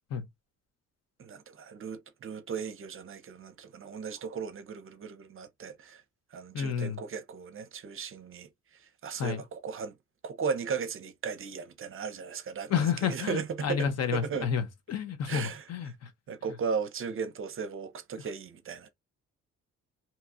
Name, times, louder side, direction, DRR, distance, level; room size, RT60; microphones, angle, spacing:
voice 1, 1.2-6.0 6.3-8.5 9.0-9.9 10.2-14.5 15.3-15.7 16.3-18.9, right 6 dB, 45° right, 0.6 m, -36 dB
voice 2, 6.5-7.0 9.2-9.4 12.7-14.6 14.9-16.1, left 7 dB, 55° left, 0.8 m, -30 dB
2.8 x 2.3 x 4.0 m
cardioid pair, 90°, 30 cm